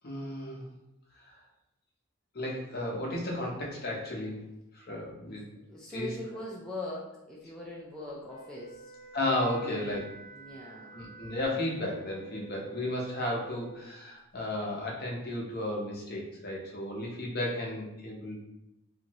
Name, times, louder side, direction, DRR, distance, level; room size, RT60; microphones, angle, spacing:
voice 1, 0.0-0.6 1.2-1.3 2.3-4.4 4.7-5.5 5.9-6.1 9.1-10.1 10.9-18.4, left 1 dB, 45° left, -2 dB, 0.7 m, -34 dB
voice 2, 5.2-8.9 9.6-10.0 10.3-11.0, left 1 dB, 5° left, -6 dB, 0.3 m, -41 dB
Wind instrument woodwind instrument, 8.2-13.7, right 4 dB, 25° right, 1.4 m, -49 dB
2.6 x 2.5 x 2.9 m, 0.90 s
head